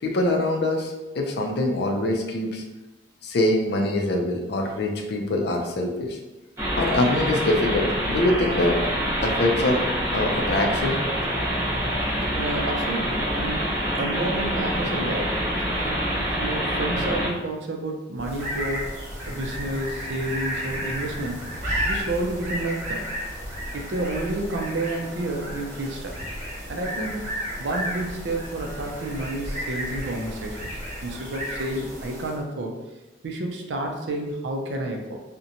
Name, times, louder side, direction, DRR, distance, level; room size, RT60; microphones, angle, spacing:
voice 1, 0.0-2.6 3.2-6.2 6.7-8.8 9.2-9.8 10.1-11.0, left 1 dB, 60° left, 2 dB, 0.4 m, -24 dB
Rainbow Lace Raw, 6.6-17.3, equal, 15° right, 0.8 m, -26 dB
voice 2, 12.3-13.6 14.0-15.4 15.7-18.9 19.3-21.5 21.9-23.1 23.7-26.1 26.7-32.7 33.2-35.2, right 2 dB, 65° right, 2 dB, 0.4 m, -30 dB
sound 1, 18.2-32.5, equal, 45° right, 1.2 m, -33 dB
2.8 x 2.1 x 2.5 m, 1.1 s
head